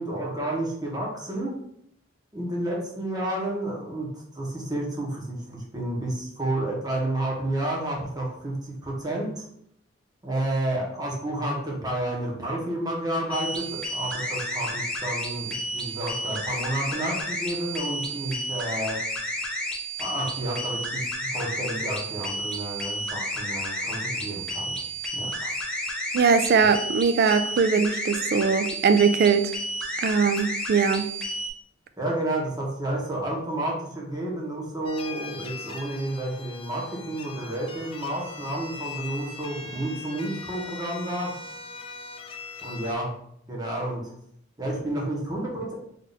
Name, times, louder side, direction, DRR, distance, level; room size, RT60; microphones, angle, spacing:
voice 1, 0.0-1.6 2.3-9.4 10.2-19.0 20.0-21.0 21.3-24.8 25.1-25.5 32.0-41.4 42.6-43.2 43.5-44.1 44.6-45.8, right 1 dB, 20° right, -2 dB, 1.1 m, -30 dB
sound 1, 13.3-31.5, equal, 5° left, 0.7 m, -31 dB
voice 2, 26.1-29.5 30.0-31.1, right 5 dB, 55° right, 10 dB, 0.3 m, -21 dB
sound 2, 34.8-42.9, left 4 dB, 30° left, 0.4 m, -40 dB
3.6 x 2.6 x 4.0 m, 0.70 s
head